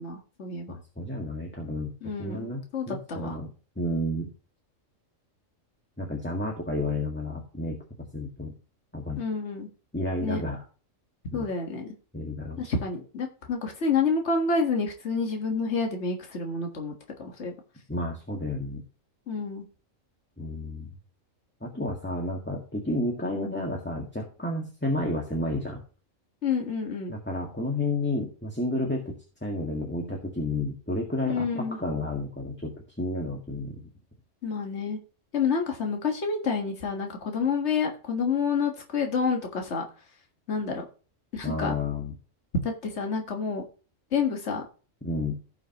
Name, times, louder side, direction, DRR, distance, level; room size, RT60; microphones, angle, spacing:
voice 1, 0.0-0.7 2.0-2.5 2.7-3.4 9.2-9.7 10.2-10.4 11.3-11.9 12.6-16.9 17.2-17.5 19.3-19.6 26.4-27.1 31.3-31.8 34.4-35.0 35.3-39.8 40.5-40.8 41.3-41.7 42.6-43.6 44.1-44.6, left 5 dB, 60° left, 2 dB, 1.9 m, -28 dB
voice 2, 0.7-1.9 2.2-3.5 3.8-4.3 6.0-7.8 8.1-8.5 8.9-9.2 9.9-10.6 11.3-11.5 12.1-12.7 17.9-18.8 20.4-20.9 21.6-25.8 27.1-29.2 29.4-32.7 33.0-33.9 41.4-42.1 45.0-45.4, left 2 dB, 10° left, -1 dB, 1.8 m, -31 dB
16.5 x 5.9 x 3.0 m, 0.36 s
omnidirectional pair, 1.4 m